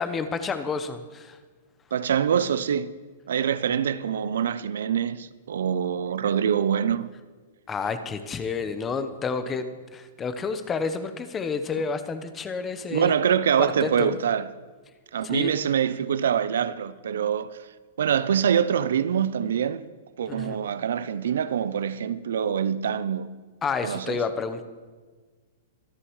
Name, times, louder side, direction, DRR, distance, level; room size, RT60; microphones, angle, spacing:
voice 1, 0.0-1.4 7.7-13.1 13.6-14.1 15.2-15.6 20.3-20.6 23.6-24.7, left 5 dB, 20° left, 1.0 m, -30 dB
voice 2, 1.9-2.9 3.3-7.1 11.7-11.8 12.9-14.5 15.1-17.6 18.0-19.8 20.2-23.3 23.8-24.2, right 8 dB, 80° right, 0.5 m, -25 dB
25.0 x 9.9 x 3.2 m
hypercardioid pair, 130°, 0 cm